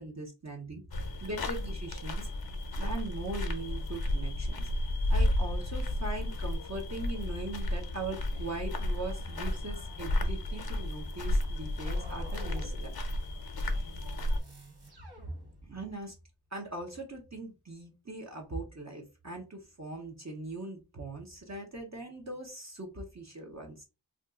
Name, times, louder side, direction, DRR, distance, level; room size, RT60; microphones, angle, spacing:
voice 1, 0.0-0.8 1.2-2.3 2.7-4.7 5.1-12.9 15.6-16.1 16.5-23.8, right 2 dB, 40° right, 0 dB, 0.8 m, -40 dB
sound 1, 0.9-14.4, left 1 dB, 55° left, 0.6 m, -32 dB
sound 2, 11.8-16.0, equal, 60° right, 1.3 m, -50 dB
2.6 x 2.3 x 3.6 m, 0.28 s
wide cardioid pair, 50°, 44 cm